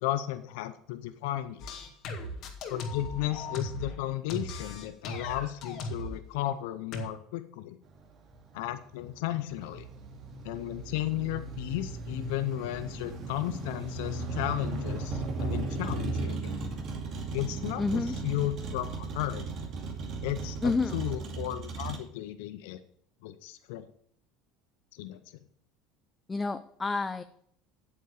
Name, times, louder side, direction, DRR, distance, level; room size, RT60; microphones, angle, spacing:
voice 1, 0.0-1.7 2.7-7.8 8.5-9.9 10.4-16.6 17.3-19.5 20.2-22.8 23.2-23.9 24.9-25.2, left 14 dB, 75° left, 11 dB, 0.6 m, -34 dB
sound 1, 1.6-4.0 4.3-6.2 6.9-7.0, left 1 dB, 55° left, 2.0 m, -38 dB
Motor vehicle (road), 7.9-22.0, right 3 dB, 50° right, 2.4 m, -36 dB
voice 2, 17.8-18.2 20.6-21.0 26.3-27.2, left 3 dB, 20° left, 11 dB, 0.5 m, -29 dB
8.4 x 7.4 x 6.7 m, 0.68 s
hypercardioid pair, 85°, 0 cm